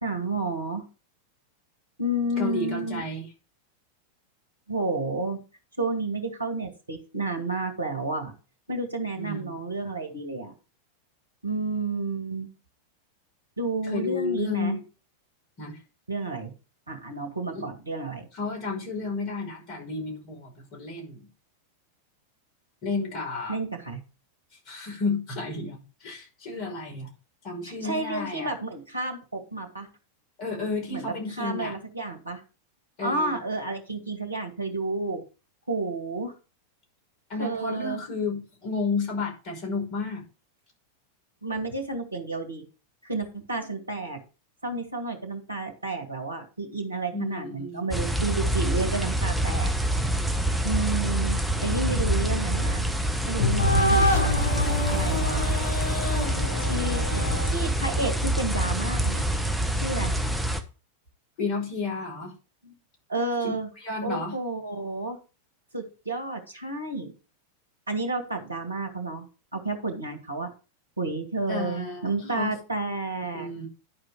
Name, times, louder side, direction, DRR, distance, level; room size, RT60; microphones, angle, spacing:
voice 1, 0.0-0.9 2.0-3.0 4.7-5.4 5.8-8.3 8.7-10.5 11.4-12.5 13.6-14.8 16.1-16.5 16.9-18.3 23.5-24.0 27.6-29.9 30.9-32.4 33.0-35.2 35.7-36.3 37.4-38.0 41.4-42.7 43.0-44.2 44.6-49.7 50.6-52.8 53.3-54.4 54.9-55.5 56.6-59.2 59.7-60.1 62.6-62.7 63.1-63.7 64.0-65.2 65.7-67.1 67.9-69.3 69.5-70.5 71.0-73.5, right 2 dB, 80° right, 4 dB, 2.1 m, -31 dB
voice 2, 2.4-3.3 9.2-9.7 13.8-14.8 15.6-15.8 17.5-17.7 18.3-21.3 22.8-23.6 24.7-27.1 27.4-28.5 30.4-31.8 33.0-33.4 37.3-40.2 47.1-48.0 56.1-56.5 61.4-62.3 63.4-64.4 71.5-72.6 73.3-73.7, left 3 dB, 40° left, 0 dB, 5.6 m, -32 dB
sound 1, 47.9-60.6, right 1 dB, ahead, 1.1 m, -26 dB
sound 2, 51.6-57.5, left 2 dB, 60° left, 1.9 m, -27 dB
11.0 x 5.0 x 5.0 m, 0.33 s
figure-of-eight pair, 90°, 0 cm